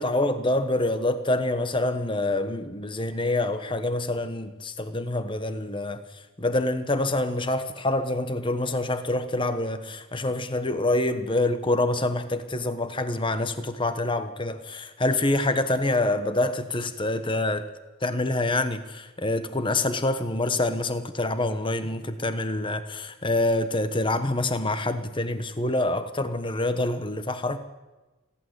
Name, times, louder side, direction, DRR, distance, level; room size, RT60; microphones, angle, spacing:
voice 1, 0.0-6.0 6.4-17.6 18.0-27.6, left 2 dB, 25° left, 11 dB, 1.2 m, -26 dB
28.0 x 11.5 x 8.1 m, 1.2 s
head